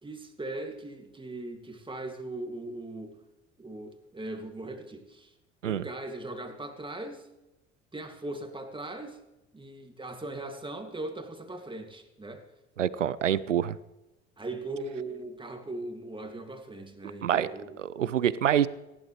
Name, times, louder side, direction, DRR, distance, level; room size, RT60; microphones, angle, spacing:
voice 1, 0.0-3.2 3.6-5.3 5.6-7.3 7.9-9.2 9.5-12.4 14.4-17.8, right 2 dB, 15° right, 5 dB, 2.5 m, -39 dB
voice 2, 12.8-13.8 17.2-17.5 17.8-18.7, right 10 dB, 90° right, 18 dB, 0.6 m, -26 dB
19.5 x 16.0 x 3.3 m, 0.99 s
figure-of-eight pair, 65°, 36 cm